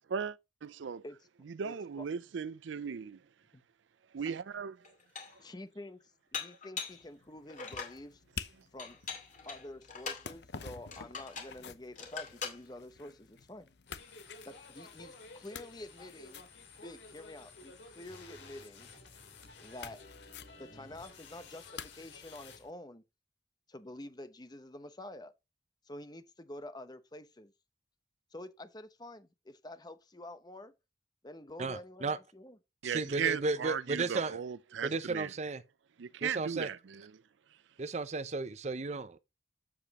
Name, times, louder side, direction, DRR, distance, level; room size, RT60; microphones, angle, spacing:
voice 1, 0.1-1.0 1.5-3.2 4.1-4.8 32.8-35.3 36.0-37.1, right 7 dB, 90° right, 0.5 m, -37 dB
voice 2, 1.6-2.0 3.5-3.6 5.4-8.2 8.7-9.0 9.5-13.7 14.5-16.5 16.8-18.9 19.6-20.0 20.6-23.0 23.7-25.3 25.8-27.5 28.3-30.7 31.2-32.6, left 1 dB, 20° left, 0.9 m, -48 dB
Dishes pots and pans, 4.3-4.4 4.8-5.5 6.3-7.0 7.5-8.0 8.8-10.3 10.9-11.6 12.0-12.6, left 6 dB, 45° left, 2.3 m, -42 dB
sound 1, 6.9-22.7, left 6 dB, 65° left, 0.8 m, -51 dB
sound 2, 13.9-22.6, left 3 dB, 85° left, 3.5 m, -53 dB
voice 3, 31.6-32.2 32.8-34.4 34.8-35.6 36.2-36.7 37.8-39.2, right 3 dB, 40° right, 0.5 m, -34 dB
8.5 x 7.5 x 3.0 m
head